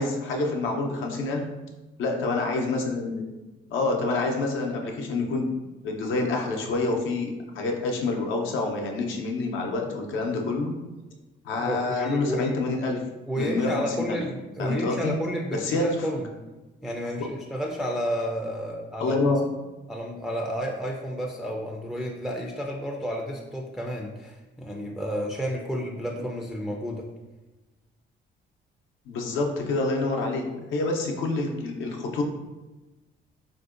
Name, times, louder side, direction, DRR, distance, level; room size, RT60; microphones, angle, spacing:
voice 1, 0.0-1.4 2.0-3.3 3.7-5.5 5.8-10.7 11.4-13.0 13.4-14.2 14.6-15.1 15.5-15.9 17.2-17.3 19.0-19.5 29.1-32.2, left 3 dB, 80° left, 1 dB, 0.6 m, -27 dB
voice 2, 11.6-12.6 13.3-16.3 16.8-19.2 19.9-27.0, equal, ahead, 0 dB, 0.3 m, -31 dB
3.6 x 2.6 x 2.4 m, 1.1 s
cardioid pair, 90°, 20 cm